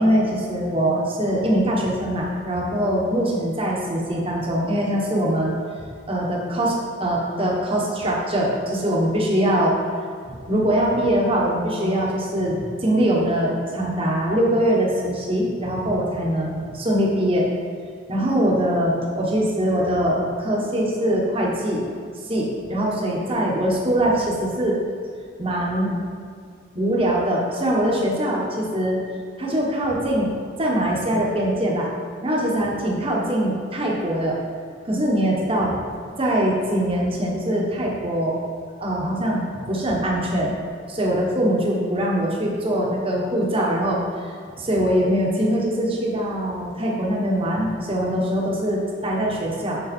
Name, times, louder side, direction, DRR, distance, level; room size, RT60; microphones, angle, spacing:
voice 1, 0.0-5.5 6.1-9.7 10.3-17.5 18.1-21.8 22.3-24.8 25.4-26.0 26.7-29.0 29.4-30.3 30.6-31.9 32.2-34.4 34.8-35.7 36.2-38.4 38.8-39.4 39.7-40.5 40.9-44.0 44.6-49.8, right 1 dB, 30° right, -2 dB, 1.3 m, -22 dB
7.0 x 6.4 x 4.4 m, 2.1 s
head